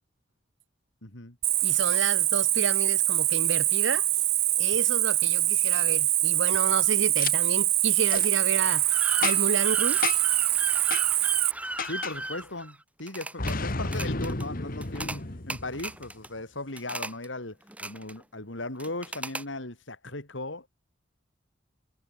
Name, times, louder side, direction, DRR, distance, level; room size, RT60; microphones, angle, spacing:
voice 1, 1.0-1.4 11.9-20.7, left 2 dB, 70° left, 3.9 m, -37 dB
Cricket, 1.4-11.5, right 13 dB, 35° right, 0.4 m, -24 dB
voice 2, 1.6-4.1 4.6-10.2, right 5 dB, 65° right, 0.9 m, -31 dB
Boom, 7.2-7.3 8.1-8.3 9.2-9.6 10.0-10.4 10.9-11.1 11.8-12.2 13.4-16.1, left 4 dB, 45° left, 1.6 m, -32 dB
sound 1, 8.6-13.6 13.8-14.5 14.8-15.2 15.5-16.3 16.8-17.3 17.6-18.2 18.8-19.4, right 2 dB, 5° right, 1.1 m, -37 dB
head